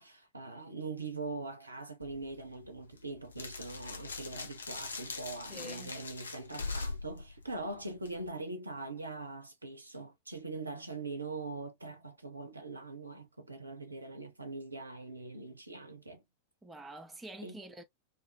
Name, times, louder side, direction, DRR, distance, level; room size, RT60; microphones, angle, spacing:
voice 1, 0.0-16.2 17.4-17.6, right 3 dB, 80° right, 0.5 m, -42 dB
sound 1, 2.0-8.3, left 4 dB, 75° left, 0.5 m, -42 dB
voice 2, 5.5-6.0 16.6-17.8, right 1 dB, 10° right, 0.6 m, -47 dB
2.4 x 2.3 x 2.7 m
figure-of-eight pair, 90°, 0 cm